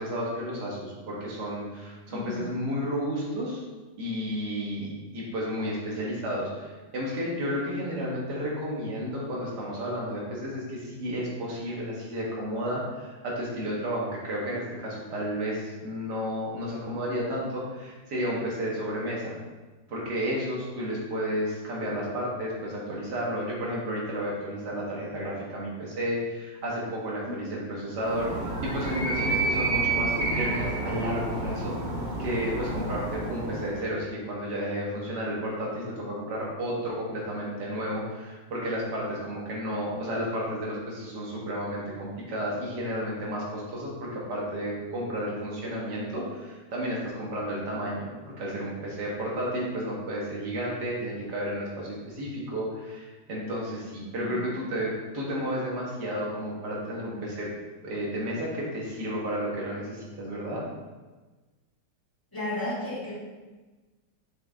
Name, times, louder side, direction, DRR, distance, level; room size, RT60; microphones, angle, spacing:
voice 1, 0.0-3.6 4.0-19.3 19.9-57.5 57.8-60.6, equal, 65° right, -4 dB, 2.1 m, -32 dB
voice 2, 2.1-2.5 27.3-27.5 54.2-54.4 62.3-63.1, left 2 dB, 10° left, -9 dB, 1.8 m, -33 dB
Animal, 28.0-33.8, right 3 dB, 35° right, 0.8 m, -29 dB
6.3 x 4.9 x 3.6 m, 1.3 s
omnidirectional pair, 2.0 m